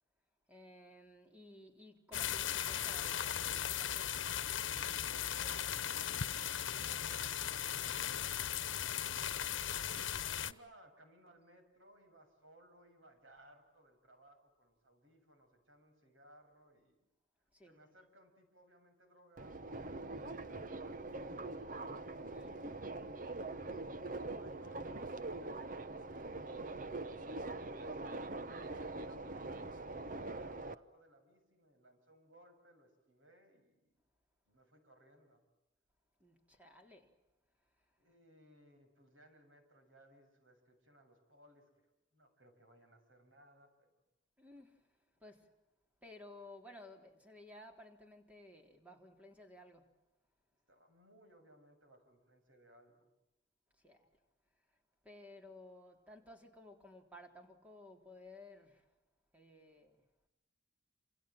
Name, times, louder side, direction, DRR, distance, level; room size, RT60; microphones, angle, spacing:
voice 1, 0.5-4.2 17.5-17.7 22.3-22.7 36.2-37.1 44.4-44.9 45.2-45.5 46.0-49.9 53.8-54.1 55.0-58.9 59.3-60.0, left 1 dB, 5° right, 3.7 m, -56 dB
sound 1, 2.1-10.5, left 9 dB, 85° left, 1.1 m, -37 dB
voice 2, 5.2-8.9 9.7-16.9 17.6-21.8 24.1-26.0 27.2-34.0 34.5-35.4 38.0-41.9 42.1-43.9 50.7-53.1, right 1 dB, 90° right, 7.5 m, -64 dB
Subway metro underground, 19.4-30.7, right 2 dB, 45° right, 1.0 m, -43 dB
28.5 x 27.5 x 7.7 m
head